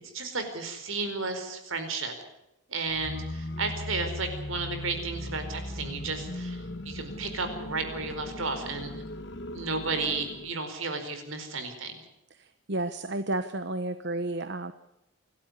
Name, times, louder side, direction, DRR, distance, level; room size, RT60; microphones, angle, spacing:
voice 1, 0.1-2.1 2.7-8.9 9.5-12.0, right 3 dB, 70° right, 8 dB, 4.6 m, -33 dB
sound 1, 2.9-10.5, left 1 dB, 55° left, 1.9 m, -38 dB
voice 2, 12.4-14.7, right 2 dB, 55° right, 11 dB, 1.0 m, -32 dB
28.0 x 12.5 x 9.8 m, 0.90 s
head